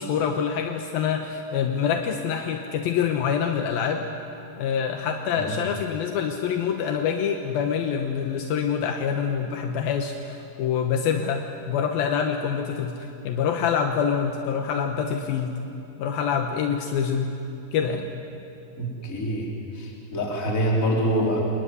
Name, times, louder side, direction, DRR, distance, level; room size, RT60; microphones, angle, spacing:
voice 1, 0.0-4.1 4.6-15.6 16.0-17.3 17.7-18.1, left 7 dB, 80° left, 5 dB, 2.9 m, -26 dB
voice 2, 18.8-19.5 19.8-21.4, equal, 20° left, -1 dB, 3.9 m, -25 dB
27.0 x 21.5 x 9.7 m, 2.8 s
omnidirectional pair, 4.3 m